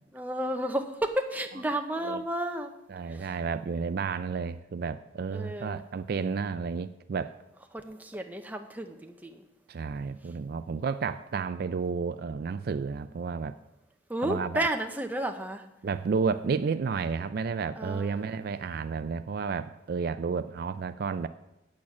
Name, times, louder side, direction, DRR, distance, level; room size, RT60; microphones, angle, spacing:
voice 1, 0.1-2.7 3.1-3.3 5.3-5.8 7.7-9.4 14.1-15.6 17.8-18.4, right 1 dB, 10° right, 5 dB, 0.7 m, -32 dB
voice 2, 2.9-7.4 9.7-13.6 14.2-14.7 15.8-21.3, right 5 dB, 55° right, 11 dB, 0.3 m, -31 dB
8.6 x 8.4 x 6.1 m, 0.92 s
head